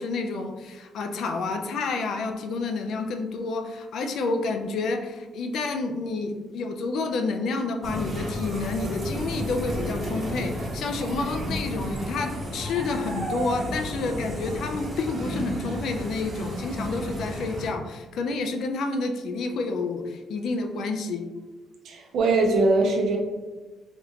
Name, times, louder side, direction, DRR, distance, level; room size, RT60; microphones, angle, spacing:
voice 1, 0.0-21.3, left 3 dB, 75° left, 5 dB, 0.4 m, -29 dB
sound 1, 7.8-17.7, equal, 40° right, 1.0 m, -32 dB
voice 2, 21.8-23.2, right 2 dB, 75° right, 1 dB, 0.6 m, -21 dB
3.5 x 2.4 x 2.8 m, 1.3 s
cardioid pair, 90°, 0 cm